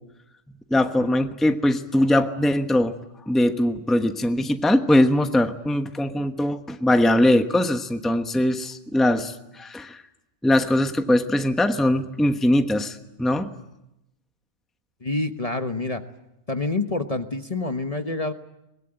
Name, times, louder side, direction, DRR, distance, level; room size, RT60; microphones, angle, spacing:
voice 1, 0.7-3.0 3.3-10.0 10.4-13.5, left 1 dB, ahead, 7 dB, 1.0 m, -21 dB
voice 2, 15.0-16.0 16.5-18.3, left 2 dB, 30° left, 7 dB, 1.2 m, -27 dB
23.0 x 21.5 x 8.9 m, 0.87 s
omnidirectional pair, 1.2 m